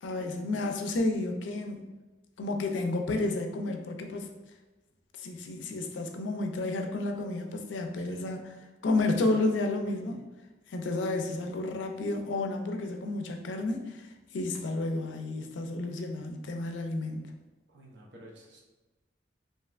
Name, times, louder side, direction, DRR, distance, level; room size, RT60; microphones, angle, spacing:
voice 1, 0.0-1.8 2.4-4.3 5.2-8.6 8.8-10.2 10.7-14.0 14.3-17.3, left 2 dB, 90° left, 4 dB, 0.4 m, -31 dB
voice 2, 17.7-18.6, right 1 dB, 75° right, -2 dB, 0.7 m, -52 dB
3.2 x 2.7 x 2.3 m, 1.1 s
head